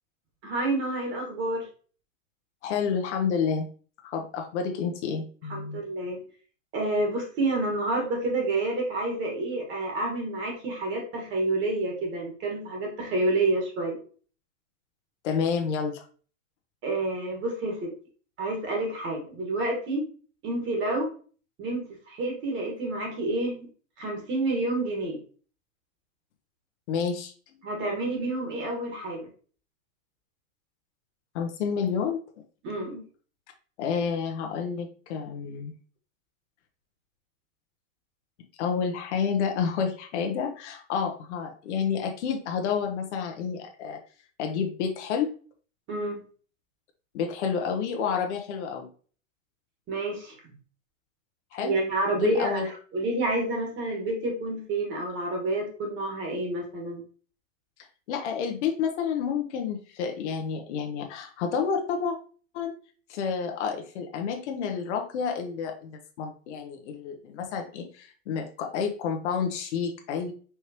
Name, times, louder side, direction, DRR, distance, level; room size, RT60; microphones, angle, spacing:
voice 1, 0.4-1.7 5.5-6.2 6.7-14.0 16.8-17.9 18.4-20.0 20.4-21.1 21.6-23.7 24.0-25.2 27.6-29.3 32.6-33.0 45.9-46.2 49.9-50.3 51.6-57.0, right 2 dB, 30° right, 1 dB, 1.5 m, -29 dB
voice 2, 2.6-3.7 4.0-5.8 15.2-16.0 26.9-27.3 31.3-32.2 33.8-35.7 38.6-44.0 44.4-45.3 47.1-48.9 51.5-51.8 52.2-52.7 58.1-62.2 62.5-62.7 63.1-70.3, left 6 dB, 60° left, 4 dB, 0.9 m, -29 dB
4.5 x 3.1 x 2.8 m, 0.41 s
hypercardioid pair, 135°, 40 cm